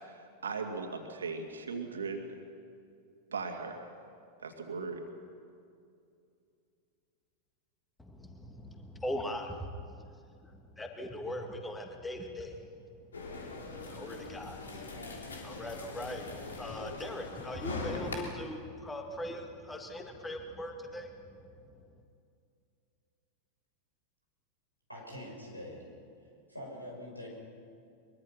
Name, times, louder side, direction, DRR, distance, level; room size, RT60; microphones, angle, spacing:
voice 1, 0.0-2.4 3.3-3.9 4.4-5.0, right 4 dB, 70° right, 4 dB, 2.5 m, -38 dB
voice 2, 8.0-12.9 13.4-15.0 15.3-21.7, left 1 dB, 10° left, 4 dB, 2.3 m, -41 dB
sound 1, 13.1-18.1, left 3 dB, 70° left, 3.4 m, -41 dB
voice 3, 24.9-25.8 26.5-27.3, left 1 dB, 90° left, -2 dB, 6.4 m, -44 dB
23.0 x 22.5 x 5.9 m, 2.4 s
figure-of-eight pair, 90°, 0 cm